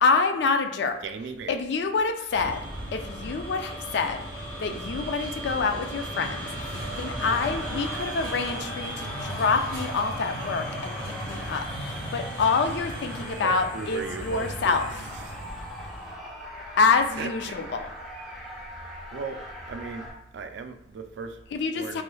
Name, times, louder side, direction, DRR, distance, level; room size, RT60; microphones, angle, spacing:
voice 1, 0.0-1.0 1.5-2.6 2.9-4.2 4.6-6.5 6.7-15.0 16.8-17.9 21.5-22.0, left 4 dB, 65° left, 7 dB, 0.4 m, -26 dB
voice 2, 1.0-1.5 4.7-5.0 13.4-14.7 17.2-17.3 19.1-19.4 19.7-20.1 20.3-21.3 21.7-22.0, right 5 dB, 70° right, 7 dB, 0.3 m, -36 dB
sound 1, 2.3-16.1, right 1 dB, 20° left, 1.1 m, -36 dB
sound 2, 5.7-9.7, equal, 20° right, 1.1 m, -44 dB
sound 3, 7.2-20.1, equal, ahead, 0.8 m, -41 dB
3.1 x 3.1 x 2.2 m, 0.80 s
head